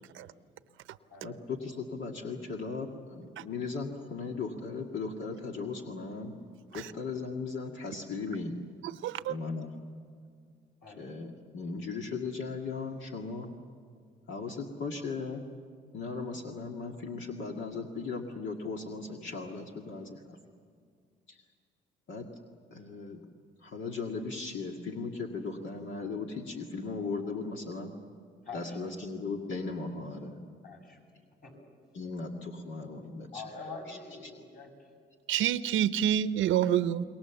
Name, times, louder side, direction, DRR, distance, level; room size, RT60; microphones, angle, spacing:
voice 1, 1.2-6.4 6.7-8.6 9.3-9.7 11.0-13.5 14.3-15.4 15.9-20.4 21.3-21.4 22.1-22.3 22.7-23.2 23.6-27.9 28.5-30.4 31.9-33.4 33.9-34.0 34.2-34.3, left 4 dB, 70° left, 1 dB, 2.1 m, -37 dB
voice 2, 9.0-9.3 35.3-37.0, right 10 dB, 85° right, 13 dB, 0.8 m, -27 dB
voice 3, 10.8-11.1 28.5-28.8 30.6-31.0 31.4-31.5 33.3-34.7, left 4 dB, 45° left, 1 dB, 7.1 m, -44 dB
27.5 x 22.5 x 7.2 m, 2.2 s
cardioid pair, 90°, 20 cm